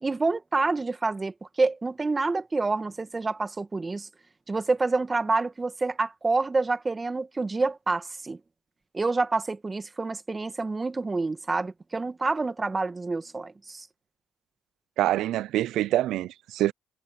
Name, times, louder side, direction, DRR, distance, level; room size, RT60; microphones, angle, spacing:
voice 1, 0.0-4.1 4.5-8.4 8.9-13.9, right 3 dB, 25° right, 2.1 m, -27 dB
voice 2, 15.0-16.7, right 14 dB, 75° right, 0.4 m, -25 dB
supercardioid pair, 60°, 0 cm